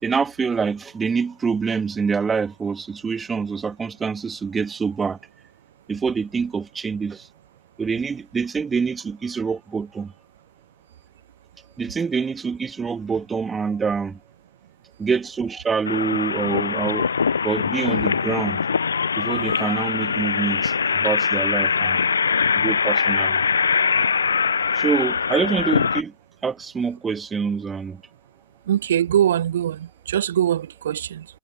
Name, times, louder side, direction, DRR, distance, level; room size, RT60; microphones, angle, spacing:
voice 1, 0.0-5.2 5.9-7.3 7.8-10.1 11.8-14.2 15.0-17.1 17.4-18.7 19.2-22.0 22.5-23.4 24.7-26.1 26.4-28.0, right 5 dB, 15° right, 2.0 m, -25 dB
sound 1, 15.8-26.0, left 6 dB, 75° left, 0.5 m, -22 dB
voice 2, 28.7-31.3, right 10 dB, 60° right, 0.8 m, -22 dB
figure-of-eight pair, 100°, 0 cm